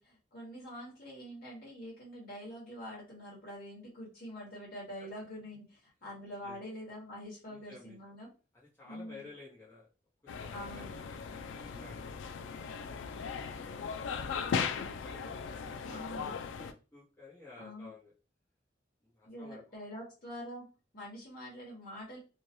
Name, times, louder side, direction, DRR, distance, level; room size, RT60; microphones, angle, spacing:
voice 1, 0.0-8.3 8.8-9.3 10.5-11.0 15.9-16.4 17.6-17.9 19.2-20.7 20.9-22.2, equal, 50° left, -5 dB, 1.3 m, -45 dB
voice 2, 7.5-8.0 8.5-9.9 10.2-10.9 11.3-12.1 13.9-18.1 19.0-19.6, left 3 dB, 15° left, -8 dB, 0.7 m, -54 dB
sound 1, 10.3-16.7, left 6 dB, 80° left, 0.3 m, -38 dB
3.1 x 2.2 x 2.6 m, 0.33 s
head